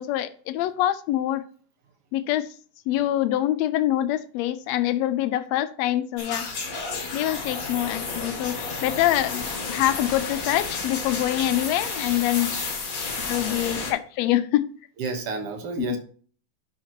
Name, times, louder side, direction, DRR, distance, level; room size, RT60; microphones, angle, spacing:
voice 1, 0.0-1.4 2.1-2.5 2.9-6.5 7.1-12.5 13.3-14.7 15.8-16.0, left 13 dB, 80° left, 1.7 m, -25 dB
sound 1, 6.2-13.9, left 4 dB, 45° left, 1.2 m, -31 dB
voice 2, 15.0-16.0, right 4 dB, 60° right, 1.9 m, -31 dB
10.5 x 5.8 x 2.9 m
omnidirectional pair, 3.4 m